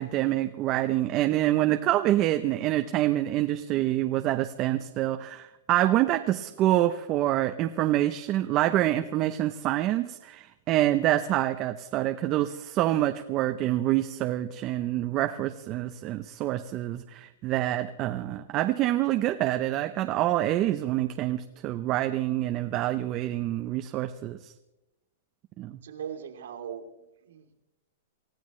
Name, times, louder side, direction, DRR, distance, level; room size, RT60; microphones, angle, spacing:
voice 1, 0.0-24.5 25.6-25.8, right 14 dB, 25° right, 7 dB, 0.6 m, -26 dB
voice 2, 25.8-27.5, right 8 dB, 90° right, 1 dB, 3.1 m, -40 dB
28.5 x 16.0 x 3.2 m, 0.96 s
supercardioid pair, 170°, 0 cm